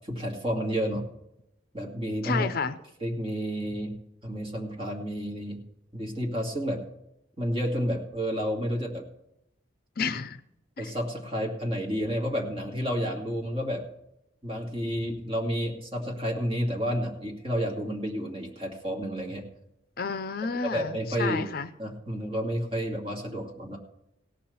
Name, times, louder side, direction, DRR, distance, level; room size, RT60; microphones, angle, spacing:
voice 1, 0.0-1.0 1.7-2.5 3.0-3.9 4.2-5.6 5.9-6.8 7.4-9.0 10.8-13.8 14.4-19.4 20.6-21.5 21.8-23.8, equal, 30° right, -1 dB, 2.3 m, -30 dB
voice 2, 2.2-2.8 10.0-10.4 10.8-10.9 20.0-21.7, left 5 dB, 50° left, 12 dB, 0.5 m, -31 dB
17.0 x 5.9 x 7.0 m, 0.81 s
head